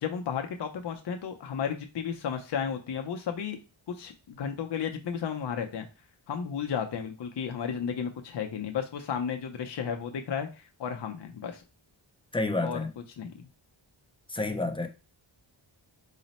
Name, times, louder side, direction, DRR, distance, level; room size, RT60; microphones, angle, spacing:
voice 1, 0.0-3.6 3.9-5.9 6.3-11.6 12.6-12.8 13.2-13.3, left 7 dB, 60° left, 0.6 m, -33 dB
voice 2, 12.3-12.9 14.3-14.9, left 2 dB, 10° left, 0.4 m, -29 dB
4.0 x 2.0 x 4.0 m
wide cardioid pair, 100°, 48 cm